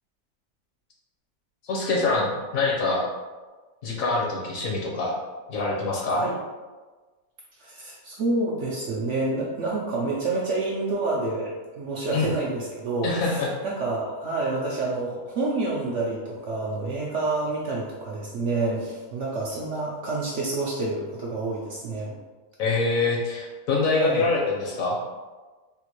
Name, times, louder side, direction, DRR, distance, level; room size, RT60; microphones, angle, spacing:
voice 1, 1.6-3.0 3.8-5.2 5.5-6.2 12.1-12.3 13.0-13.5 22.6-25.0, left 3 dB, 65° left, -2 dB, 1.1 m, -25 dB
voice 2, 7.6-22.1 24.0-24.3, right 2 dB, 65° right, -3 dB, 0.7 m, -28 dB
3.7 x 2.4 x 2.9 m, 1.3 s
omnidirectional pair, 1.6 m